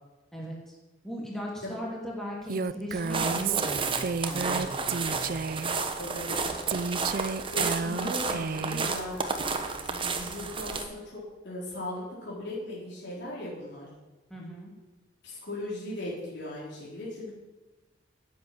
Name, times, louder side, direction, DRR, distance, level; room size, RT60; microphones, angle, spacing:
voice 1, 0.3-0.8 1.0-5.3 14.3-14.7, equal, ahead, -4 dB, 2.8 m, -38 dB
Female speech woman speaking, 2.5-5.8 6.7-8.9, right 5 dB, 50° right, 0.4 m, -31 dB
sound 1, 2.9-10.8, right 4 dB, 25° right, 1.1 m, -32 dB
voice 2, 6.0-6.7 7.4-13.9 15.2-17.3, left 1 dB, 70° left, -7 dB, 4.3 m, -38 dB
10.5 x 8.4 x 9.0 m, 1.1 s
head